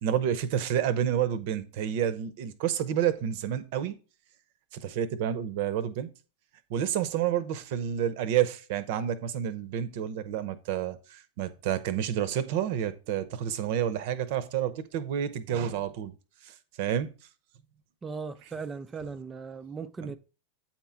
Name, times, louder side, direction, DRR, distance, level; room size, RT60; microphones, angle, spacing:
voice 1, 0.0-4.0 4.7-6.1 6.7-16.1 16.4-17.1 20.0-20.1, right 9 dB, 50° right, 0.8 m, -29 dB
voice 2, 18.0-20.2, right 5 dB, 15° right, 0.5 m, -38 dB
8.7 x 4.5 x 4.5 m
figure-of-eight pair, 90°, 0 cm